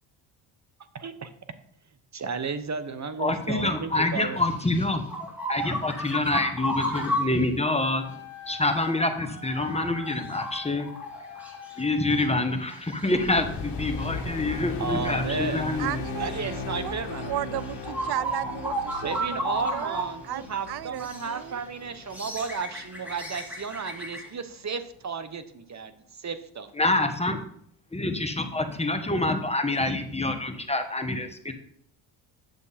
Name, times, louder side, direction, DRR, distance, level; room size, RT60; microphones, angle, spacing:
voice 1, 0.9-1.3 2.1-4.4 14.8-15.7 16.2-17.6 19.0-26.7, right 5 dB, 35° right, 11 dB, 1.1 m, -33 dB
voice 2, 3.2-5.0 5.5-8.0 8.5-10.9 11.8-16.0 26.8-27.4 27.9-31.5, left 2 dB, 15° left, 6 dB, 1.4 m, -26 dB
sound 1, 4.4-7.4 8.7-8.9 9.2-11.8 12.1-12.2 12.7-13.4 14.0-14.1 14.9-15.1 16.3-16.5 17.2-17.3 17.6-20.1 20.4-20.5 21.0-21.3 21.9-24.3, equal, 5° right, 3.1 m, -33 dB
Wind instrument woodwind instrument, 7.8-12.6, left 8 dB, 30° left, 1.9 m, -44 dB
sound 2, 13.1-23.6, left 4 dB, 55° left, 1.8 m, -37 dB
voice 3, 15.8-21.6, right 13 dB, 55° right, 19 dB, 0.6 m, -35 dB
9.1 x 7.0 x 4.2 m, 0.65 s
supercardioid pair, 65°, 49 cm